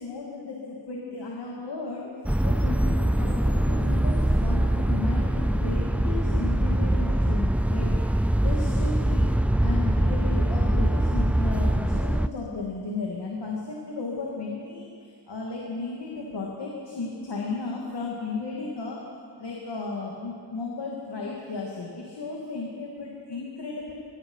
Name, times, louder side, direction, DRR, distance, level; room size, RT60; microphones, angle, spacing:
voice 1, 0.0-2.1 2.4-8.0 8.4-9.3 9.6-19.0 19.4-23.9, left 3 dB, 80° left, -3 dB, 2.8 m, -34 dB
sound 1, 2.2-12.3, right 1 dB, 5° right, 0.4 m, -23 dB
23.0 x 20.0 x 5.8 m, 2.2 s
wide cardioid pair, 140°, 40 cm